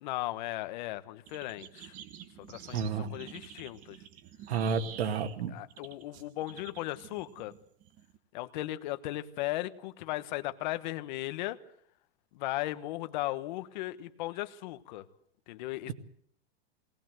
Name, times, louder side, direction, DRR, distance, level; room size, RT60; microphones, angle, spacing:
voice 1, 0.0-1.9 2.4-4.0 5.5-7.5 8.3-11.6 12.3-15.0 15.5-15.9, left 16 dB, 45° left, 11 dB, 1.3 m, -37 dB
sound 1, 1.3-8.2, right 10 dB, 25° right, 1.1 m, -49 dB
voice 2, 2.7-3.1 4.5-5.5 15.9-16.0, right 6 dB, 85° right, 9 dB, 2.0 m, -31 dB
20.5 x 19.0 x 7.8 m, 0.64 s
supercardioid pair, 170°, 31 cm